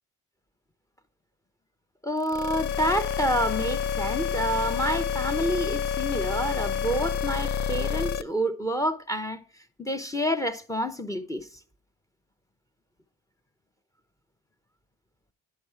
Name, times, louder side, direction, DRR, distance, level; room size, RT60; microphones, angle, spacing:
voice 1, 2.0-9.4 9.8-11.5, equal, 10° left, 0.8 m, -28 dB
sound 1, 2.2-8.2, left 7 dB, 65° left, 0.6 m, -28 dB
10.0 x 5.7 x 4.6 m
cardioid pair, 90°, 30 cm